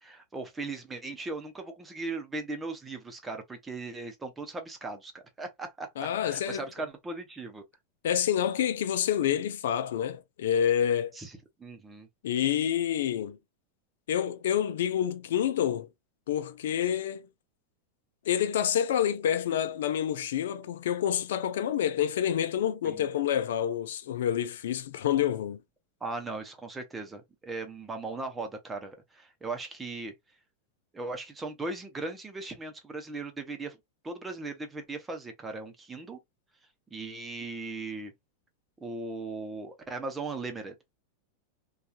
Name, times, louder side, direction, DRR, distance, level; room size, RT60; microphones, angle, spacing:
voice 1, 0.0-5.1 5.4-7.6 11.1-11.3 11.6-12.1 22.8-23.1 26.0-30.1 30.9-33.8 34.0-36.2 36.9-38.1 38.8-40.7, right 3 dB, 15° right, 0.7 m, -38 dB
voice 2, 6.0-6.7 8.0-11.2 12.2-13.4 14.1-15.9 16.3-17.3 18.3-25.6, left 10 dB, 80° left, 0.5 m, -28 dB
2.7 x 2.3 x 2.3 m
hypercardioid pair, 125°, 0 cm